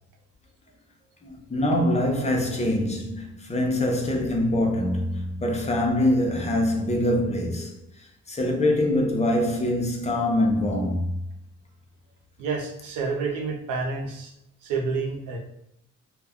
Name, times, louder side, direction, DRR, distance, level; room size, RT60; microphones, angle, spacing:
voice 1, 1.2-7.7 8.3-11.1, left 1 dB, 20° left, 0.6 m, -24 dB
voice 2, 12.4-14.3 14.6-15.4, right 4 dB, 90° right, 0.7 m, -29 dB
2.3 x 2.2 x 3.4 m
cardioid pair, 90°, 30 cm